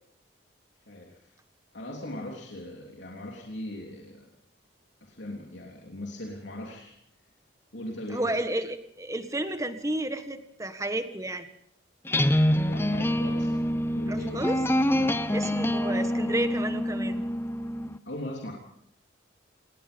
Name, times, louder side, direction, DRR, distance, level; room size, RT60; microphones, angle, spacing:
voice 1, 0.9-1.2 1.7-4.3 5.0-6.9 7.7-8.4 12.5-13.7 13.9-14.5 14.9-15.2 18.0-18.5, left 1 dB, 70° left, 0 dB, 3.3 m, -39 dB
voice 2, 8.1-11.5 14.1-14.6 15.3-17.3, right 1 dB, 15° right, 9 dB, 1.5 m, -31 dB
sound 1, 12.0-18.0, left 1 dB, 10° left, 0.8 m, -26 dB
28.0 x 19.5 x 5.3 m, 0.73 s
head